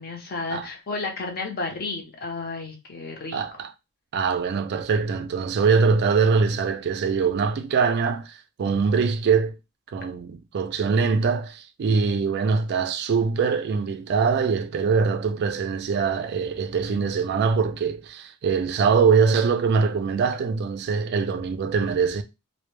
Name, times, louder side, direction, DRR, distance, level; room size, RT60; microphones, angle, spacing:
voice 1, 0.0-3.4, left 3 dB, 45° left, 0.6 m, -32 dB
voice 2, 3.3-3.7 4.1-9.5 9.9-22.2, right 5 dB, 50° right, 0.3 m, -23 dB
2.1 x 2.0 x 3.0 m
head